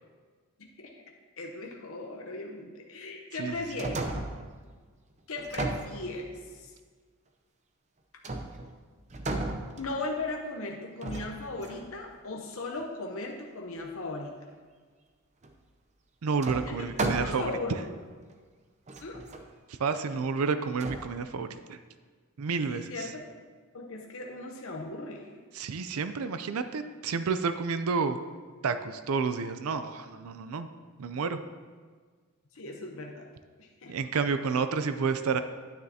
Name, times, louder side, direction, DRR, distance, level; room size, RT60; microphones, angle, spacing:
voice 1, 0.6-0.9 1.4-4.1 5.3-6.7 9.8-14.3 16.6-16.9 17.2-17.8 19.0-19.2 22.7-23.4 23.7-25.3 32.5-33.3 33.6-33.9, left 2 dB, 65° left, 1 dB, 0.8 m, -37 dB
sound 1, 3.5-4.5 5.4-6.5 8.2-8.8 9.1-10.2 11.0-11.9 15.4-15.5 16.4-17.6 18.3-18.4 18.9-19.4 20.8-21.1, right 2 dB, 30° right, 0.6 m, -34 dB
voice 2, 16.2-17.5 19.8-21.8 22.4-22.9 25.5-28.2 28.6-30.7 31.0-31.4 33.9-35.4, right 5 dB, 75° right, 10 dB, 0.5 m, -30 dB
9.5 x 9.4 x 2.8 m, 1.5 s
head